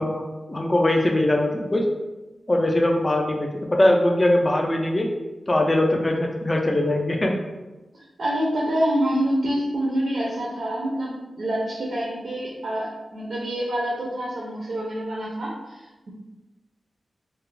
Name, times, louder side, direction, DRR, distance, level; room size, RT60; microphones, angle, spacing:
voice 1, 0.0-1.9 2.5-5.1 5.5-7.4, left 1 dB, 20° left, 1 dB, 0.3 m, -21 dB
voice 2, 7.9-16.1, equal, 65° right, -5 dB, 0.4 m, -26 dB
2.3 x 2.0 x 3.1 m, 1.1 s
wide cardioid pair, 155°, 0 cm